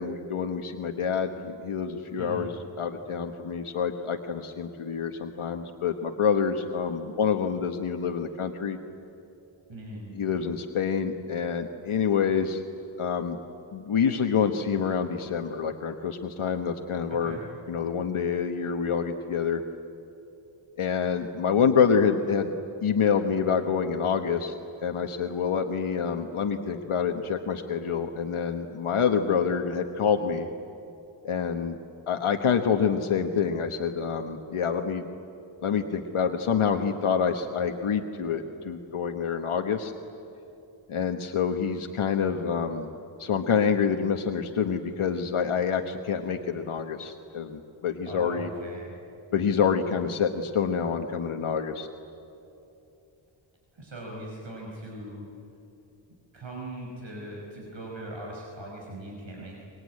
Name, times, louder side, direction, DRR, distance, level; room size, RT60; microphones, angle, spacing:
voice 1, 0.0-2.5 2.8-8.8 10.2-12.6 13.0-13.4 13.7-17.4 17.7-19.6 20.8-22.5 22.8-24.5 24.8-30.5 31.2-31.8 32.1-35.1 35.6-39.9 40.9-42.9 43.2-48.5 49.3-51.9, left 6 dB, 80° left, 5 dB, 1.3 m, -27 dB
voice 2, 2.2-2.5 9.7-10.1 17.2-17.4 48.0-49.0 53.7-55.3 56.3-59.6, right 1 dB, 65° right, -2 dB, 5.6 m, -40 dB
25.0 x 22.5 x 9.7 m, 2.9 s
wide cardioid pair, 135°, 49 cm